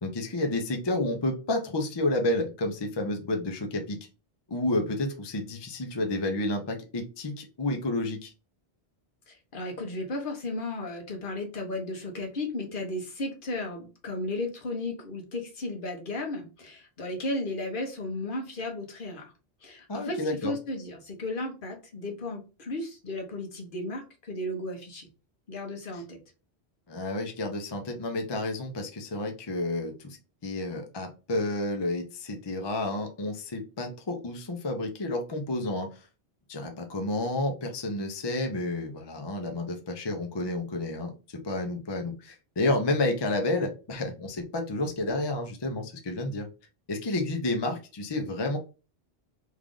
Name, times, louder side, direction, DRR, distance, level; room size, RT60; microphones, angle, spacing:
voice 1, 0.0-4.0 4.5-8.3 19.9-20.5 25.9-26.0 26.9-30.2 30.4-35.9 36.5-46.5 46.9-48.6, left 2 dB, 35° left, 4 dB, 0.5 m, -30 dB
voice 2, 9.3-19.3 19.6-25.1 25.5-26.2, left 2 dB, 55° left, 2 dB, 1.0 m, -34 dB
3.2 x 2.4 x 3.6 m, 0.32 s
omnidirectional pair, 1.1 m